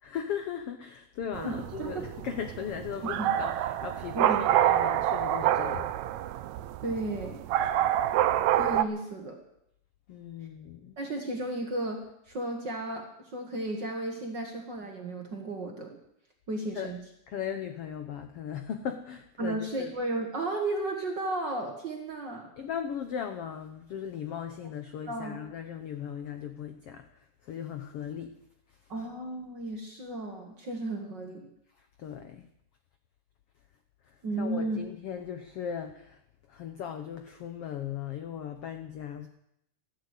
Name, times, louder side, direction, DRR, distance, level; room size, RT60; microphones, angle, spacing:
voice 1, 0.0-5.9 10.1-11.0 16.7-16.9 17.3-19.9 22.6-28.4 28.7-28.9 31.7-32.5 34.0-36.2 36.5-39.3, left 8 dB, 80° left, 7 dB, 1.3 m, -38 dB
sound 1, 1.3-8.8, right 12 dB, 80° right, 1.7 m, -27 dB
voice 2, 1.4-2.0 3.2-3.3 4.1-4.4 6.8-7.4 8.6-9.4 11.0-16.0 16.5-17.0 19.4-22.5 25.1-25.4 28.9-31.5 34.2-34.8, right 2 dB, 45° right, 2 dB, 1.6 m, -34 dB
14.5 x 11.0 x 8.3 m, 0.78 s
omnidirectional pair, 4.0 m